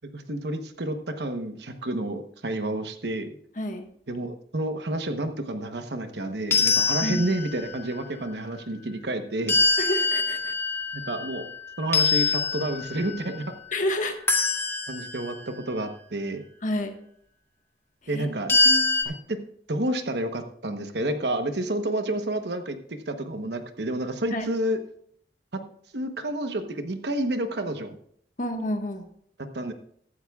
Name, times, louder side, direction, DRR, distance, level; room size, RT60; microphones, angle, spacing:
voice 1, 0.0-3.4 4.1-9.6 10.9-11.5 11.8-13.5 14.9-16.4 18.1-18.5 19.1-19.4 19.7-24.8 25.5-25.6 25.9-28.0 29.4-29.7, right 1 dB, 65° right, 8 dB, 1.1 m, -30 dB
voice 2, 3.6-3.9 7.0-7.2 9.8-10.5 13.7-14.2 16.6-16.9 18.0-18.3 18.6-18.9 24.3-24.5 28.4-29.1, left 1 dB, 45° left, 5 dB, 1.5 m, -29 dB
sound 1, 6.5-7.7 9.5-11.5 11.9-13.2 14.3-15.3 18.5-19.0, left 3 dB, 15° left, 1.9 m, -24 dB
15.5 x 12.5 x 2.4 m, 0.66 s
head